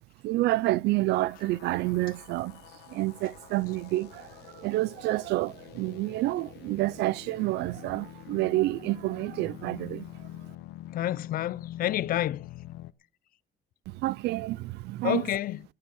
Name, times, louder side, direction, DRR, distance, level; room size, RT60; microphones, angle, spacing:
voice 1, 0.2-2.6 2.9-4.3 4.6-10.0 14.0-15.2, right 18 dB, 80° right, 0.6 m, -28 dB
sound 1, 1.3-12.9, left 14 dB, 80° left, 0.9 m, -45 dB
voice 2, 10.9-12.4 15.0-15.6, left 13 dB, 60° left, 0.6 m, -29 dB
12.0 x 11.5 x 6.4 m
cardioid pair, 110°, 17 cm